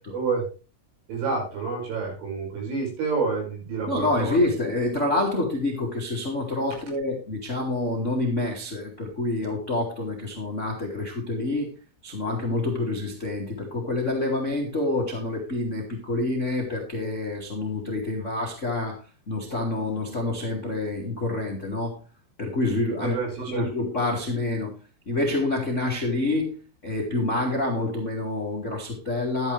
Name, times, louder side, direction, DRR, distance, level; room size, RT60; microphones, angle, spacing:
voice 1, 0.1-0.5 1.1-4.4 23.0-23.6, right 4 dB, 70° right, -1 dB, 8.2 m, -28 dB
voice 2, 3.9-11.7 12.0-22.0 22.4-24.7 25.0-26.5 26.8-29.5, left 2 dB, 55° left, 0 dB, 0.8 m, -27 dB
12.5 x 10.5 x 3.4 m, 0.32 s
omnidirectional pair, 5.7 m